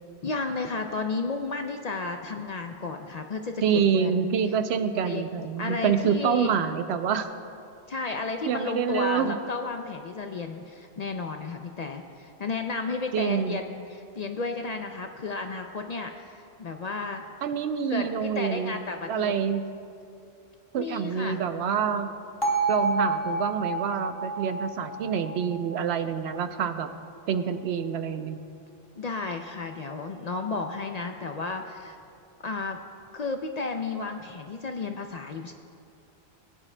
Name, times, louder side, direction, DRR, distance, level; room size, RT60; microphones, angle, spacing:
voice 1, 0.2-4.2 5.0-6.5 7.9-17.2 17.9-19.3 20.8-21.4 29.0-32.0 32.4-32.8 33.1-35.5, left 3 dB, 55° left, 5 dB, 0.5 m, -33 dB
voice 2, 3.6-7.3 8.1-8.2 8.4-9.4 13.1-13.6 17.4-18.8 19.1-19.6 20.7-22.1 22.7-26.9 27.3-28.4, right 7 dB, 80° right, 9 dB, 0.8 m, -27 dB
Bell, 22.4-26.5, right 2 dB, 25° left, 1.2 m, -29 dB
18.5 x 9.7 x 2.2 m, 2.5 s
omnidirectional pair, 1.1 m